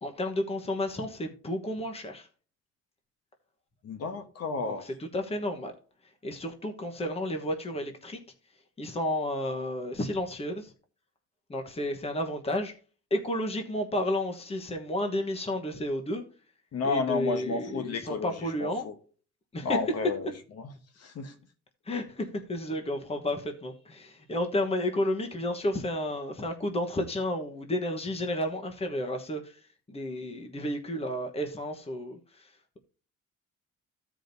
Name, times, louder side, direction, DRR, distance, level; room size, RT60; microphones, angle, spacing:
voice 1, 0.0-2.3 4.6-5.7 6.0-8.2 8.5-10.7 11.5-12.7 13.1-16.2 16.8-18.9 19.5-19.9 21.8-32.8, left 1 dB, 20° left, 1.1 m, -32 dB
voice 2, 3.8-4.9 16.7-18.3 18.6-18.9 19.6-20.3 20.6-20.7 21.0-21.3, left 4 dB, 55° left, 1.2 m, -31 dB
15.0 x 5.0 x 2.7 m
cardioid pair, 140°, 30 cm